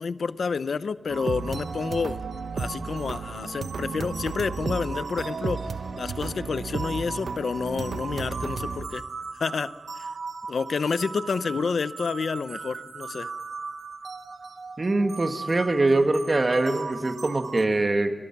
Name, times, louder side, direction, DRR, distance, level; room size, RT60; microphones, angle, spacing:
voice 1, 0.0-2.2 2.5-5.6 6.0-9.0 9.4-10.1 10.5-13.3, left 5 dB, 90° left, 15 dB, 0.6 m, -29 dB
sound 1, 1.1-17.6, right 4 dB, 90° right, 1.1 m, -35 dB
voice 2, 14.8-18.1, right 2 dB, 40° right, 6 dB, 1.9 m, -23 dB
28.0 x 22.0 x 6.0 m, 1.2 s
wide cardioid pair, 80°, 0 cm